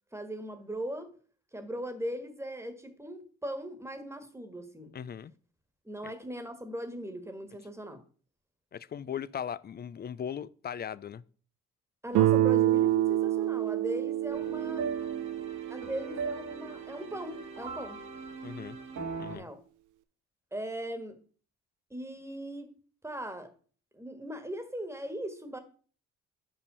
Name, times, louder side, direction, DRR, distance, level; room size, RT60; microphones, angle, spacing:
voice 1, 0.1-1.1 1.5-4.9 5.8-8.0 12.0-15.0 15.7-18.0 19.3-19.6 20.5-21.2 21.9-22.7 23.0-23.5 23.9-25.6, right 1 dB, 10° right, 1.5 m, -39 dB
voice 2, 4.9-5.3 6.0-6.1 8.7-11.2 18.4-18.8 19.2-19.5, left 8 dB, 35° left, 0.4 m, -38 dB
Guitar, 12.1-16.9, right 13 dB, 85° right, 0.6 m, -28 dB
sound 1, 14.3-19.4, right 4 dB, 70° right, 2.1 m, -39 dB
5.5 x 5.3 x 6.7 m
cardioid pair, 90°, 30 cm